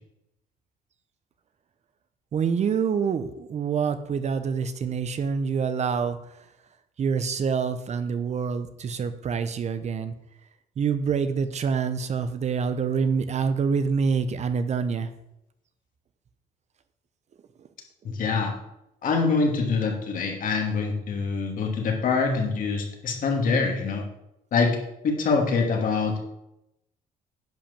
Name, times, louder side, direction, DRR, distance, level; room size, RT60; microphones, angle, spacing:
voice 1, 2.3-6.4 7.0-10.1 10.8-15.1 17.6-17.7, right 6 dB, 40° right, 11 dB, 0.9 m, -26 dB
voice 2, 18.0-18.5 19.0-24.0 24.5-24.8 25.0-26.2, left 4 dB, 55° left, 2 dB, 2.7 m, -24 dB
10.5 x 5.1 x 7.3 m, 0.84 s
cardioid pair, 110°, 17 cm